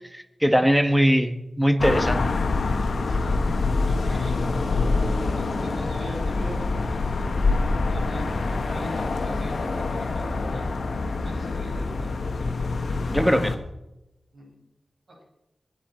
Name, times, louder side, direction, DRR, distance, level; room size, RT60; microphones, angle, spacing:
voice 1, 0.1-2.3 13.1-13.6, equal, 5° right, 9 dB, 1.3 m, -21 dB
sound 1, 1.8-13.6, left 3 dB, 80° left, 1.3 m, -25 dB
voice 2, 2.7-7.4 7.9-10.8 11.2-12.1 14.3-14.5 15.1-15.2, right 1 dB, 65° right, -1 dB, 5.3 m, -41 dB
sound 2, 3.7-11.1, right 1 dB, 35° right, 2.1 m, -46 dB
21.0 x 9.4 x 4.4 m, 0.92 s
cardioid pair, 60°, 0 cm